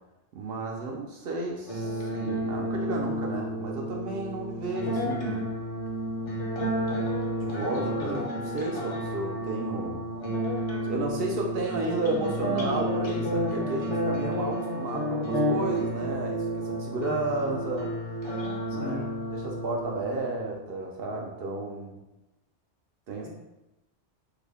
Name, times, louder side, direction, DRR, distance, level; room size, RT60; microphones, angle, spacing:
voice 1, 0.3-5.5 7.0-7.1 7.4-10.0 10.8-17.9 18.7-22.0 23.1-23.3, right 2 dB, 65° right, 0 dB, 0.7 m, -33 dB
sound 1, 1.7-20.6, equal, 40° left, 0.6 m, -31 dB
voice 2, 8.0-8.3 17.1-17.4 18.8-19.1, left 3 dB, 65° left, -1 dB, 0.9 m, -36 dB
3.3 x 2.1 x 3.5 m, 0.96 s
omnidirectional pair, 1.2 m